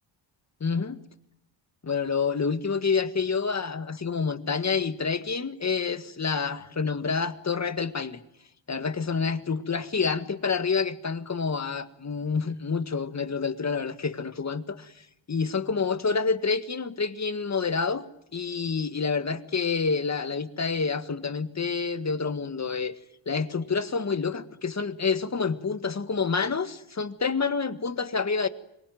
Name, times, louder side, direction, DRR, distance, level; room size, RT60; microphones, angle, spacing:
voice 1, 0.6-1.0 1.8-8.2 8.7-18.0 18.3-23.0 23.3-28.5, left 5 dB, 35° left, 11 dB, 1.8 m, -28 dB
26.0 x 23.0 x 9.3 m, 0.78 s
cardioid pair, 110°, 46 cm